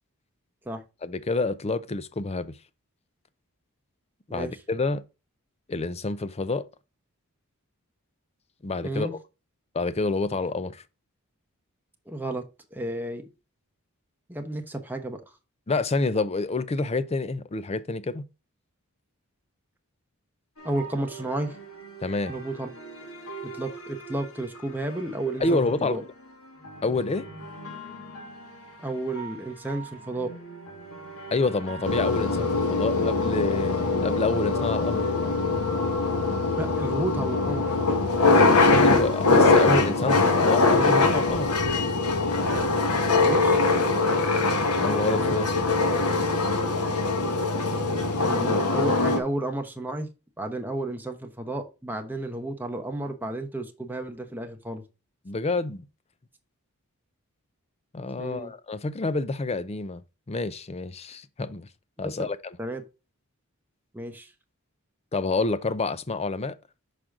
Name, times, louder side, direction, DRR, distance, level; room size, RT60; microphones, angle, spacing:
voice 1, 1.0-2.6 4.3-5.0 5.7-6.7 8.6-9.2 9.7-10.8 15.7-18.2 22.0-22.3 25.4-26.0 26.8-27.2 31.3-35.1 38.8-41.5 44.7-45.5 55.2-55.9 57.9-60.0 60.3-61.7 62.0-62.6 65.1-66.6, left 3 dB, 30° left, 0.5 m, -28 dB
voice 2, 8.8-9.1 12.1-12.4 12.7-13.2 14.3-15.2 20.6-21.5 22.3-22.7 23.4-26.0 28.8-30.3 36.5-37.8 43.2-43.6 48.2-50.1 50.4-54.8 58.2-58.5 62.2-62.3 62.6-62.8 63.9-64.3, right 1 dB, 10° right, 1.0 m, -32 dB
sound 1, 20.6-36.1, right 2 dB, 65° left, 2.2 m, -43 dB
sound 2, 31.8-49.2, left 3 dB, 85° left, 1.2 m, -22 dB
6.1 x 5.0 x 3.7 m
head